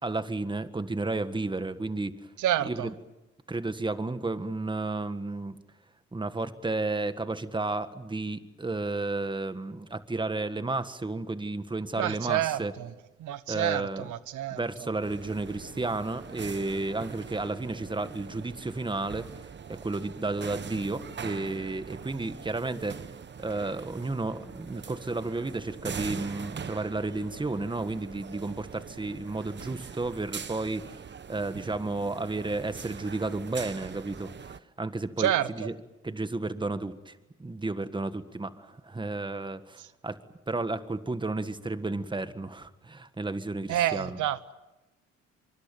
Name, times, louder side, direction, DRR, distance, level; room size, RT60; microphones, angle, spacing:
voice 1, 0.0-2.2 2.6-2.9 3.5-5.6 6.1-12.7 13.5-14.1 14.5-23.0 23.4-31.0 31.3-35.7 36.0-40.2 40.5-44.2, right 2 dB, 15° right, 1.7 m, -32 dB
voice 2, 2.4-2.9 12.0-12.9 13.2-14.6 35.2-35.7 43.7-44.5, right 12 dB, 80° right, 1.1 m, -28 dB
sound 1, 15.0-34.6, right 7 dB, 35° right, 1.0 m, -42 dB
24.5 x 24.0 x 9.1 m
cardioid pair, 90°, 30 cm